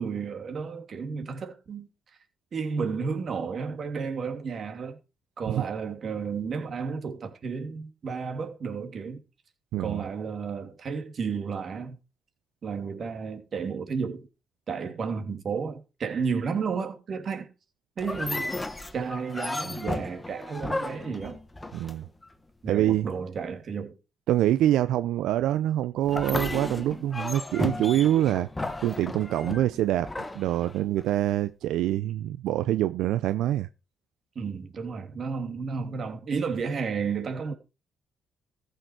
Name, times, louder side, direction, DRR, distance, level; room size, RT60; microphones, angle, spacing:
voice 1, 0.0-1.9 2.5-5.0 5.4-9.2 9.8-11.9 12.6-14.3 14.7-17.5 18.0-18.5 18.9-21.4 22.6-24.0 34.3-37.5, right 5 dB, 50° right, 2.9 m, -32 dB
sound 1, 18.0-22.3 26.0-31.1, left 2 dB, 15° left, 1.2 m, -34 dB
voice 2, 21.7-22.0 22.7-23.1 24.3-28.5 28.8-33.7, right 13 dB, 85° right, 0.5 m, -25 dB
14.5 x 6.5 x 4.8 m
cardioid pair, 90°, 0 cm